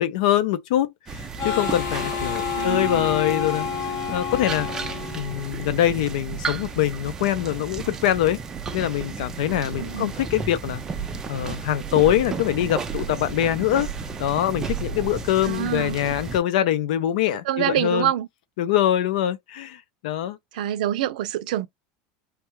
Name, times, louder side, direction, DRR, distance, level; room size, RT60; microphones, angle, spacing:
voice 1, 0.0-4.7 5.1-8.4 8.7-10.8 11.3-13.9 14.2-18.1 18.6-20.4, left 12 dB, 70° left, 0.6 m, -24 dB
sound 1, 1.1-16.4, right 5 dB, 15° right, 0.4 m, -33 dB
Harmonica, 1.4-5.9, left 7 dB, 40° left, 0.9 m, -29 dB
voice 2, 2.5-3.2 9.8-10.1 15.4-16.0 17.4-18.3 20.5-21.7, right 12 dB, 80° right, 0.5 m, -26 dB
3.3 x 2.4 x 3.1 m
supercardioid pair, 175°, 4 cm